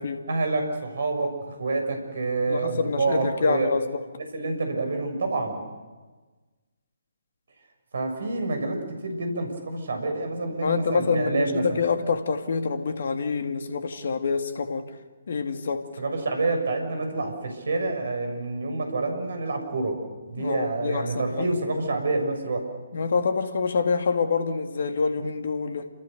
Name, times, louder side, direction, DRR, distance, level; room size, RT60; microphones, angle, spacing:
voice 1, 0.3-3.7 4.3-5.6 7.9-11.8 16.0-20.0 20.3-22.7, right 3 dB, 60° right, 6.7 m, -27 dB
voice 2, 2.4-4.0 10.6-14.9 15.3-15.9 20.4-21.5 22.9-25.9, left 5 dB, 55° left, 2.5 m, -26 dB
29.5 x 27.0 x 6.9 m
figure-of-eight pair, 140°, 0 cm